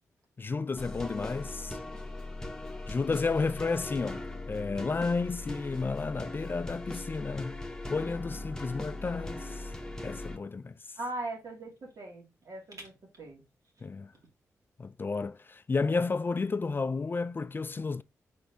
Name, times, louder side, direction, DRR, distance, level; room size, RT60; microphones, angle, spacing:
voice 1, 0.4-1.8 2.9-7.6 7.9-9.7 10.0-10.8 13.8-14.1 14.8-18.0, left 4 dB, 35° left, 0.3 m, -32 dB
sound 1, 0.8-10.4, left 2 dB, 10° left, 1.0 m, -40 dB
voice 2, 11.0-13.4, right 2 dB, 65° right, 2.3 m, -40 dB
4.5 x 4.1 x 2.8 m
supercardioid pair, 50°, 6 cm